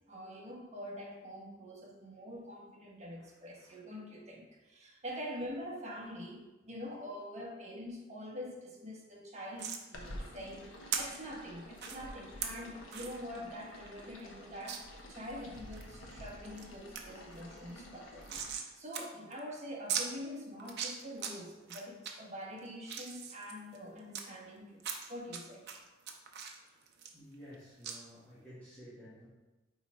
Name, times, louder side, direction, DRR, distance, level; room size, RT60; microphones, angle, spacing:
voice 1, 0.1-24.8 25.1-25.6, equal, 35° right, -2 dB, 1.2 m, -45 dB
sound 1, 9.6-9.8 10.9-11.0 11.8-12.0 12.4-12.5 12.9-13.1 13.5-13.6 13.9-14.0 14.7-14.8 15.3-15.8 16.3-16.7 17.0-17.1 17.3-18.7 18.9-19.0 19.3-19.4 19.9-20.1 20.6-21.3 21.7-22.1 22.6-24.2 24.8-25.4 25.7-27.6 27.8-28.0, right 7 dB, 60° right, 0.7 m, -38 dB
sound 2, 9.9-18.5, left 1 dB, 80° left, 1.1 m, -50 dB
voice 2, 27.1-29.3, equal, 10° left, -12 dB, 1.5 m, -53 dB
5.4 x 4.1 x 4.3 m, 1.1 s
head